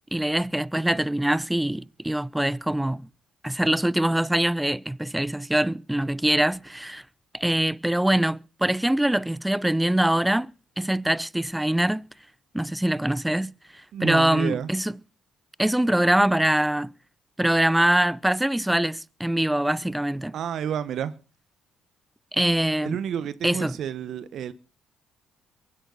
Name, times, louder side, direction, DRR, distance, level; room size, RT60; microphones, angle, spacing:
voice 1, 0.1-3.1 3.4-7.0 7.3-10.5 10.8-12.1 12.5-13.5 14.0-14.9 15.6-16.9 17.4-20.3 22.3-23.0 23.4-23.8, right 1 dB, 5° right, 0.6 m, -23 dB
voice 2, 13.9-14.7 20.3-21.1 22.8-24.5, right 9 dB, 65° right, 1.2 m, -30 dB
23.5 x 10.0 x 4.0 m
hypercardioid pair, 55°, 0 cm